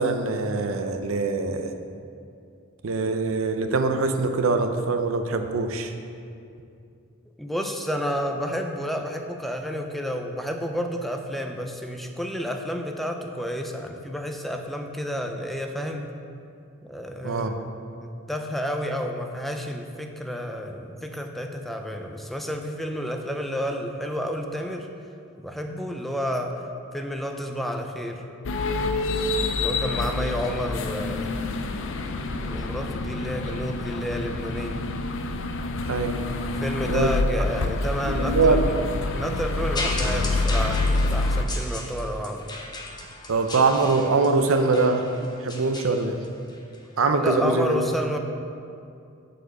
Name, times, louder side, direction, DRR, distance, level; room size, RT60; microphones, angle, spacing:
voice 1, 0.0-1.7 2.8-5.9 17.2-17.5 35.8-36.2 36.9-37.1 38.0-38.6 43.3-45.1 45.4-46.2 47.0-47.8, right 3 dB, 70° right, 7 dB, 0.6 m, -23 dB
voice 2, 7.4-16.1 16.8-17.5 17.9-24.9 25.4-26.6 26.9-28.2 29.6-31.3 32.4-34.9 36.5-38.8 39.0-42.5 47.1-48.2, equal, ahead, 4 dB, 0.5 m, -30 dB
sound 1, 28.5-41.4, left 2 dB, 65° left, 0.5 m, -27 dB
sound 2, 39.7-46.8 47.5-47.6, left 2 dB, 20° left, 0.8 m, -36 dB
7.6 x 4.4 x 6.7 m, 2.5 s
head